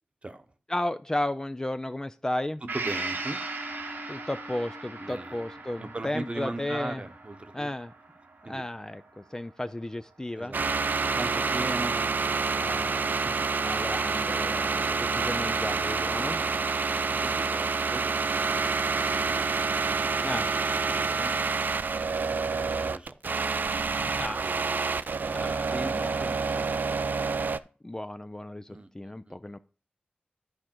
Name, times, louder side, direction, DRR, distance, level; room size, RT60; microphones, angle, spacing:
voice 1, 0.7-2.6 4.1-7.0 7.5-7.9 8.5-10.5 12.6-13.2 13.6-16.4 20.2-20.5 24.2-24.4 25.3-26.3 27.8-29.6, left 1 dB, 20° left, 0.4 m, -34 dB
voice 2, 2.7-3.4 5.0-5.4 5.8-7.7 8.4-8.6 10.3-12.8 13.2-13.3 16.4-18.6 19.0-20.1 20.9-21.3 22.1-24.7 25.2-27.2 28.7-29.6, right 2 dB, 35° right, 0.9 m, -40 dB
Gong, 2.7-10.3 10.7-10.8, right 3 dB, 85° right, 1.1 m, -39 dB
Bowed string instrument, 3.0-7.7, left 2 dB, 40° left, 0.8 m, -49 dB
sound 1, 10.5-27.6, right 4 dB, 65° right, 0.4 m, -28 dB
11.5 x 4.8 x 4.5 m
wide cardioid pair, 70°, 3 cm